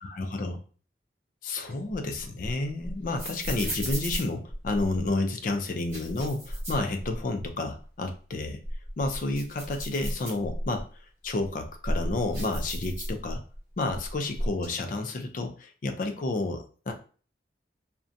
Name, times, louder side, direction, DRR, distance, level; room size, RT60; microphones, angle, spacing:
voice 1, 0.0-0.6 1.4-8.6 9.0-10.9 11.2-13.4 13.8-17.0, left 2 dB, 45° left, 5 dB, 0.4 m, -30 dB
sound 1, 1.6-5.1 5.7-7.5 7.8-7.9 8.5-10.8 11.4-13.6 13.9-14.7, equal, 15° right, 1.2 m, -34 dB
2.5 x 2.1 x 2.5 m, 0.40 s
head